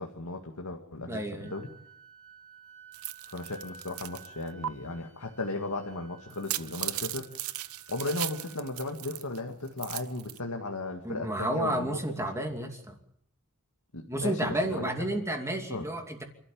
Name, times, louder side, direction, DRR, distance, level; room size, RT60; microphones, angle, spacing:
voice 1, 0.0-1.7 3.3-7.4 7.9-12.7 13.9-14.8 15.1-15.2 15.7-15.9, left 2 dB, 85° left, 3 dB, 2.1 m, -36 dB
voice 2, 1.1-1.5 11.0-13.0 14.1-16.3, right 1 dB, 15° right, 3 dB, 2.7 m, -31 dB
Wind instrument woodwind instrument, 1.4-9.2, right 4 dB, 5° left, 3.2 m, -54 dB
sound 1, 2.9-4.3 4.6-4.7 6.3-9.4 9.7-10.4, right 14 dB, 70° right, 0.8 m, -37 dB
27.0 x 13.0 x 8.7 m, 0.70 s
head